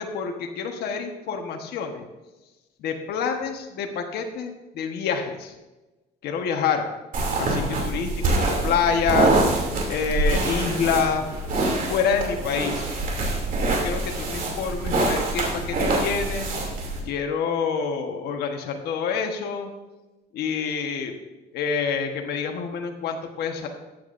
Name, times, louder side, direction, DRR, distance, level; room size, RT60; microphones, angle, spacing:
voice 1, 0.0-2.0 2.8-5.5 6.2-6.9 7.4-9.4 9.9-11.3 11.9-13.0 13.7-16.5 17.0-19.7 20.3-21.1 21.5-23.7, left 6 dB, 70° left, 3 dB, 1.3 m, -27 dB
sound 1, 7.1-17.0, right 2 dB, 55° right, 2.8 m, -25 dB
14.0 x 8.9 x 2.6 m, 1.1 s
cardioid pair, 110°, 17 cm